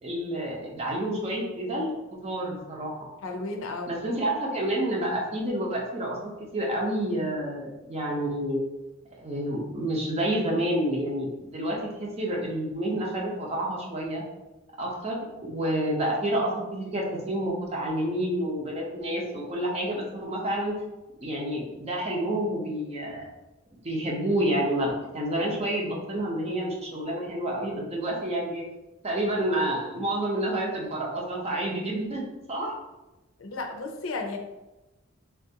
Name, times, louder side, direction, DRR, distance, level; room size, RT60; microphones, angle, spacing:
voice 1, 0.0-1.9 2.2-2.9 3.9-6.2 6.5-8.6 9.2-14.2 14.8-20.8 21.2-23.3 23.8-28.6 29.0-32.7, right 1 dB, 30° right, -1 dB, 0.6 m, -29 dB
voice 2, 3.2-3.9 33.4-34.4, left 3 dB, 90° left, 4 dB, 0.5 m, -33 dB
3.4 x 2.4 x 2.7 m, 1.0 s
head